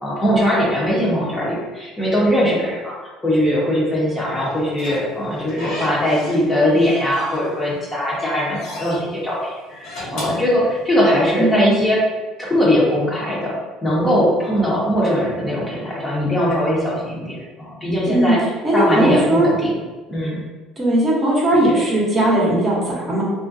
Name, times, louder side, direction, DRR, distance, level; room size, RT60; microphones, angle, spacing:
voice 1, 0.0-9.4 9.7-12.0 12.4-13.5 13.8-18.4 18.7-19.7 20.1-20.4, equal, 20° left, -6 dB, 0.8 m, -20 dB
Slam / Squeak, 4.4-6.5 6.8-7.7 8.1-9.0 9.7-11.2, left 1 dB, 70° left, 0.9 m, -34 dB
voice 2, 11.4-11.8 18.1-18.4 18.6-19.5 20.8-23.2, right 1 dB, 25° right, -5 dB, 0.8 m, -18 dB
2.4 x 2.1 x 2.5 m, 1.3 s
supercardioid pair, 105°, 0 cm